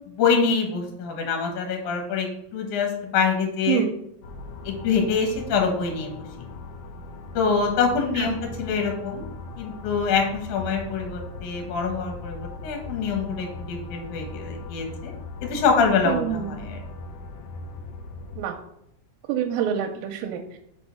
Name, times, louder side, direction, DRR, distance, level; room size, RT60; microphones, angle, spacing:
voice 1, 0.1-3.8 4.6-6.3 7.3-9.2 9.6-15.1 15.4-16.8, left 5 dB, 65° left, 2 dB, 2.5 m, -25 dB
sound 1, 4.2-18.4, left 3 dB, 90° left, 1.5 m, -39 dB
voice 2, 16.1-16.6 18.4-18.5 19.3-20.6, right 9 dB, 85° right, 3 dB, 2.3 m, -26 dB
5.4 x 4.4 x 5.7 m, 0.77 s
omnidirectional pair, 4.1 m